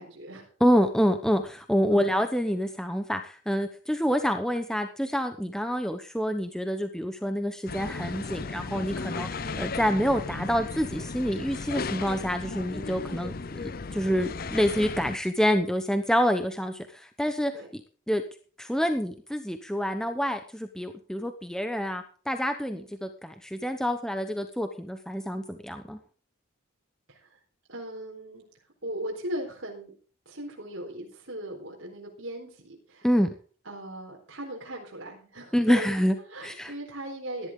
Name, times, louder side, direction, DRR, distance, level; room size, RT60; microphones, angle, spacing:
voice 1, 0.0-0.5 1.9-2.1 9.4-9.6 17.5-17.7 22.7-22.9 27.1-27.4 27.7-28.5 28.8-29.9 30.3-33.1 33.6-37.5, right 1 dB, 65° right, -2 dB, 4.2 m, -38 dB
voice 2, 0.6-17.5 18.1-18.2 18.6-26.0 33.0-33.3 35.5-36.1 36.4-36.7, equal, 5° left, 7 dB, 0.9 m, -27 dB
sound 1, 7.7-15.2, left 4 dB, 45° left, 0.6 m, -35 dB
17.5 x 11.5 x 3.8 m, 0.40 s
head